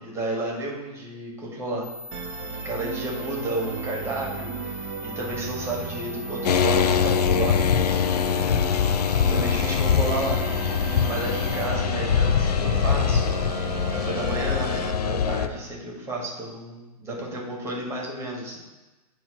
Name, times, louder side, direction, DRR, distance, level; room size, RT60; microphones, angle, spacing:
voice 1, 0.0-1.9 2.4-8.9 9.2-10.7 11.0-13.5 13.9-18.6, right 1 dB, 15° right, -2 dB, 1.8 m, -32 dB
sound 1, 1.8-11.6, left 2 dB, 5° left, 0.7 m, -41 dB
Musical instrument, 2.1-14.9, right 6 dB, 40° right, 0.8 m, -35 dB
sound 2, 6.4-15.5, left 8 dB, 80° left, 0.5 m, -23 dB
8.7 x 3.0 x 5.6 m, 1.1 s
hypercardioid pair, 120°, 20 cm